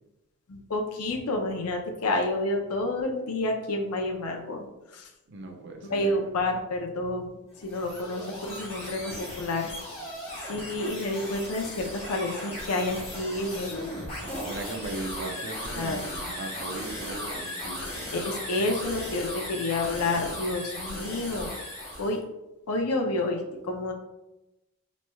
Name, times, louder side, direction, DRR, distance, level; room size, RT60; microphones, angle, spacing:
voice 1, 0.5-4.6 4.9-5.1 5.9-9.7 10.5-13.9 15.8-16.0 18.1-21.5 22.0-22.2 22.7-23.9, left 2 dB, 85° left, 2 dB, 0.6 m, -29 dB
voice 2, 5.3-6.2 14.4-17.9, right 2 dB, 50° right, 2 dB, 0.6 m, -38 dB
sound 1, 7.5-22.2, left 1 dB, 25° left, 0.9 m, -37 dB
4.2 x 3.1 x 2.3 m, 0.97 s
head